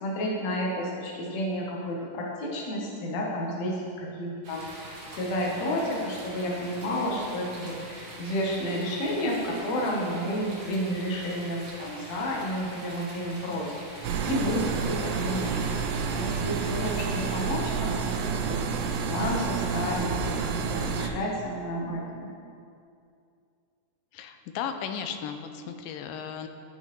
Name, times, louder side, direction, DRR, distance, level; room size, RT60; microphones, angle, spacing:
voice 1, 0.0-15.6 16.1-22.3, equal, 65° left, -2 dB, 2.1 m, -31 dB
sound 1, 4.4-17.6, right 1 dB, 65° right, 1.6 m, -44 dB
sound 2, 14.0-21.1, right 5 dB, 90° right, 2.3 m, -29 dB
voice 2, 24.1-26.5, left 7 dB, 85° left, 7 dB, 2.2 m, -35 dB
12.5 x 5.4 x 3.1 m, 2.4 s
omnidirectional pair, 3.8 m